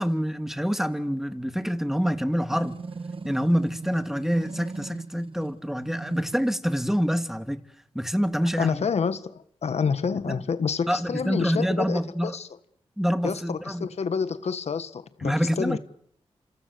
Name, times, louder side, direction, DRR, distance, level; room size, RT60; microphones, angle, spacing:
voice 1, 0.0-2.7 3.2-7.6 7.9-8.8 10.3-10.4 10.9-12.3 13.0-13.9 15.2-15.8, equal, 5° right, 2.9 m, -26 dB
sound 1, 2.5-6.5, right 4 dB, 55° right, 1.9 m, -39 dB
voice 2, 8.6-12.5 13.2-15.8, left 6 dB, 75° left, 1.5 m, -28 dB
28.0 x 27.0 x 6.9 m
cardioid pair, 40°, 11 cm